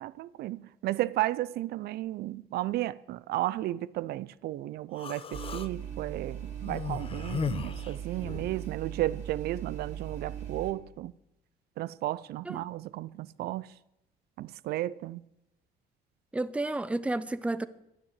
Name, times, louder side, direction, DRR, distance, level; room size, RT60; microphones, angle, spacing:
voice 1, 0.0-11.1 11.8-13.7 14.4-15.2, right 15 dB, 70° right, 0.5 m, -33 dB
Human voice, 5.0-5.7 6.6-8.6, left 7 dB, 35° left, 0.7 m, -36 dB
sound 1, 5.3-10.7, right 9 dB, 40° right, 3.0 m, -39 dB
voice 2, 16.3-17.7, right 2 dB, 5° right, 0.7 m, -31 dB
12.5 x 10.0 x 8.1 m
cardioid pair, 110°, 17 cm